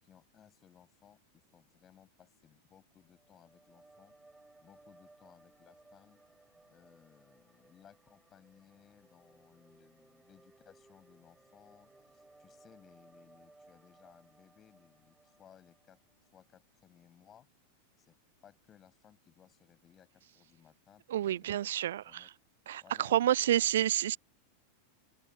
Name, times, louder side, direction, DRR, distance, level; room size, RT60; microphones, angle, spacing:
voice 1, 0.0-4.2 4.6-6.2 6.7-16.0 16.3-17.5 18.0-18.1 18.4-22.3 22.8-23.7, left 9 dB, 25° left, 7.3 m, -62 dB
sound 1, 3.1-16.4, right 2 dB, 5° right, 5.0 m, -63 dB
voice 2, 21.1-22.3 22.7-24.2, right 12 dB, 60° right, 0.7 m, -29 dB
open air
figure-of-eight pair, 90°, 0 cm